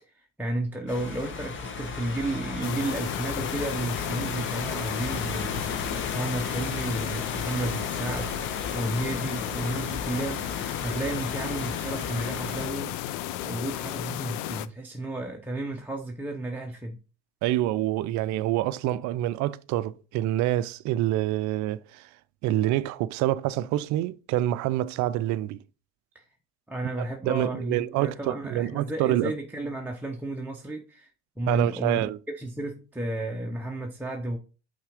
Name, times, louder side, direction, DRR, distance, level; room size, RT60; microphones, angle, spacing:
voice 1, 0.1-8.4 8.7-13.0 13.4-17.0 26.1-26.3 26.7-31.1 31.4-34.4, right 2 dB, 5° right, 0.9 m, -33 dB
sound 1, 0.9-12.7, left 4 dB, 30° left, 1.3 m, -35 dB
sound 2, 2.6-14.7, left 13 dB, 55° left, 0.6 m, -34 dB
voice 2, 17.4-22.1 22.4-25.6 27.0-29.3 31.5-32.2, right 14 dB, 50° right, 0.6 m, -27 dB
5.6 x 3.6 x 5.1 m
hypercardioid pair, 75°, 36 cm